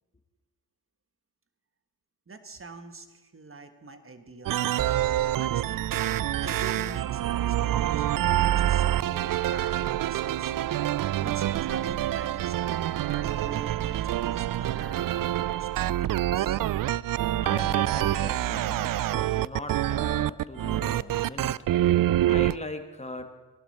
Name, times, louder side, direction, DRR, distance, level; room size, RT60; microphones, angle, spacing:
voice 1, 2.3-5.9 6.1-10.8 11.2-16.6, right 3 dB, 30° right, 8 dB, 1.6 m, -44 dB
sound 1, 4.5-22.6, right 13 dB, 55° right, 0.5 m, -26 dB
voice 2, 17.4-21.6 21.9-23.3, left 2 dB, 15° left, 6 dB, 1.8 m, -40 dB
19.0 x 11.5 x 4.4 m, 1.2 s
cardioid pair, 60°, 41 cm